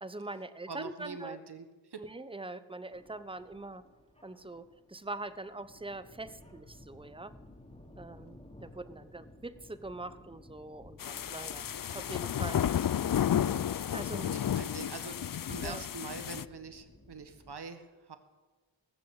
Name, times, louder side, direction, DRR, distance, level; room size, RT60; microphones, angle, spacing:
voice 1, 0.0-1.4 2.0-3.8 4.2-7.3 8.0-11.6 11.9-12.6 13.9-14.3 15.6-15.8, right 2 dB, 10° right, 13 dB, 0.9 m, -43 dB
voice 2, 0.7-2.0 13.8-14.0 14.3-18.2, right 4 dB, 55° right, 9 dB, 1.5 m, -44 dB
sound 1, 2.9-17.6, left 1 dB, 10° left, 2.6 m, -56 dB
sound 2, 11.0-16.4, left 10 dB, 45° left, 0.5 m, -32 dB
19.5 x 6.5 x 8.1 m, 1.3 s
cardioid pair, 50°, 48 cm